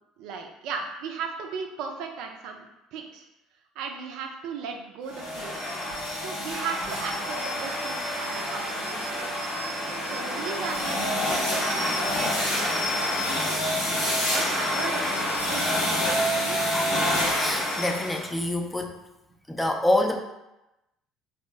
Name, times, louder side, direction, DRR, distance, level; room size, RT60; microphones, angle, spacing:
voice 1, 0.2-3.3 3.8-5.6 6.2-9.6 10.0-13.6 13.9-16.6, right 5 dB, 65° right, 3 dB, 0.4 m, -37 dB
sound 1, 5.1-18.3, left 1 dB, 80° left, 1.0 m, -27 dB
voice 2, 17.4-19.0 19.5-20.2, left 1 dB, 10° left, 3 dB, 0.5 m, -26 dB
2.7 x 2.0 x 3.3 m, 0.94 s
hypercardioid pair, 65°, 0 cm